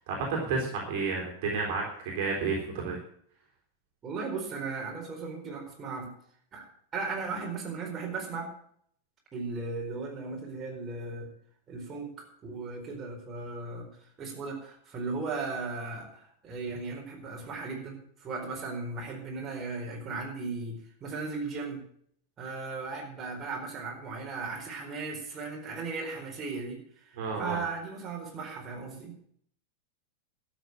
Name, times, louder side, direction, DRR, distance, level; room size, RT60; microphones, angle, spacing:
voice 1, 0.0-1.8 2.1-3.0 27.2-27.6, right 4 dB, 50° right, -1 dB, 3.7 m, -31 dB
voice 2, 4.0-6.1 6.5-8.5 9.3-11.3 11.7-12.1 12.4-13.9 14.2-21.8 22.4-29.3, right 4 dB, 25° right, -1 dB, 4.5 m, -37 dB
12.5 x 7.6 x 8.9 m, 0.64 s
figure-of-eight pair, 90°, 0 cm